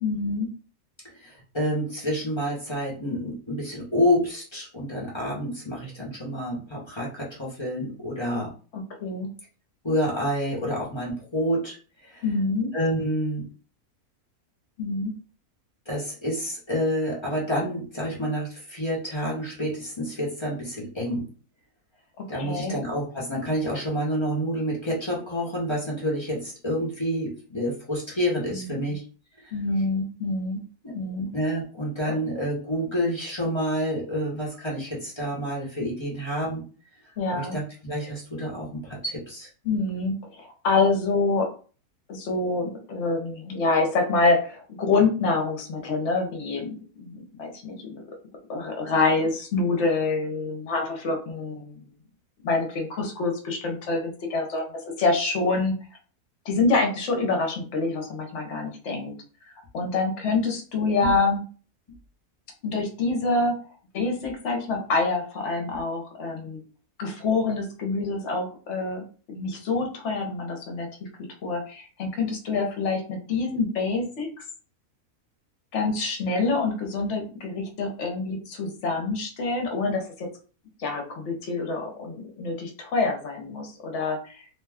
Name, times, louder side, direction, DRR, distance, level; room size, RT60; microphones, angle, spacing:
voice 1, 0.0-0.5 8.7-9.3 12.2-12.7 14.8-15.1 22.2-22.8 28.5-28.9 29.5-30.6 30.9-31.3 32.1-32.2 37.2-37.6 39.6-41.5 42.1-48.0 48.5-51.7 52.4-55.7 56.4-59.1 59.7-61.4 62.6-63.5 63.9-66.6 67.0-70.9 71.4-74.3 75.7-80.3 80.8-84.4, left 3 dB, 55° left, 2 dB, 1.0 m, -26 dB
voice 2, 1.2-8.5 9.8-11.8 12.0-12.2 12.7-13.5 15.9-21.3 22.3-29.0 30.8-36.6 37.3-39.5 61.0-61.1, equal, 25° left, -5 dB, 0.6 m, -28 dB
2.7 x 2.2 x 3.4 m, 0.39 s
omnidirectional pair, 1.7 m